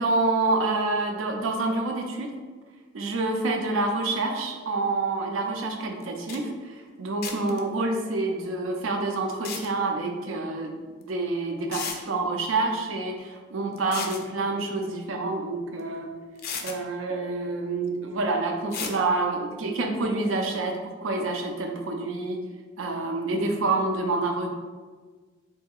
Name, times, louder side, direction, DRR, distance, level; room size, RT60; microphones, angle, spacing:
voice 1, 0.0-2.3 2.9-10.7 11.1-16.1 16.6-22.4 22.8-24.5, right 2 dB, 85° right, 3 dB, 0.4 m, -27 dB
sound 1, 6.0-6.1 6.3-6.4 7.2-7.6 9.3-9.7 11.0-11.1 11.7-12.0 13.8-14.2 15.8-15.9 16.4-16.8 18.7-19.0, left 6 dB, 50° left, 0.3 m, -34 dB
3.6 x 2.7 x 2.3 m, 1.4 s
head